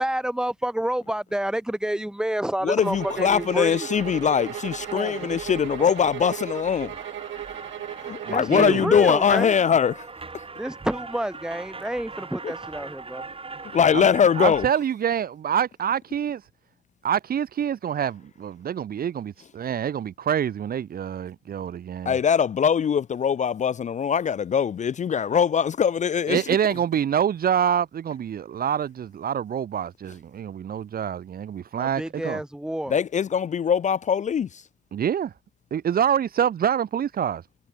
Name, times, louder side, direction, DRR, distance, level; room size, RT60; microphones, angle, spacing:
voice 1, 0.0-3.9 4.9-5.4 8.3-9.5 10.6-13.2 31.8-32.9, right 1 dB, 5° right, 1.0 m, -29 dB
voice 2, 2.6-6.9 8.0-10.1 12.4-12.5 13.7-14.7 22.1-26.4 32.9-34.6, left 7 dB, 40° left, 0.5 m, -22 dB
sound 1, 2.8-8.6, right 12 dB, 70° right, 2.2 m, -36 dB
sound 2, 2.9-14.7, right 4 dB, 30° right, 7.9 m, -41 dB
voice 3, 8.3-8.9 13.9-14.1 14.4-16.4 17.0-22.2 26.3-32.4 34.9-35.3 35.7-37.4, right 9 dB, 50° right, 0.8 m, -26 dB
cardioid pair, 90°, 20 cm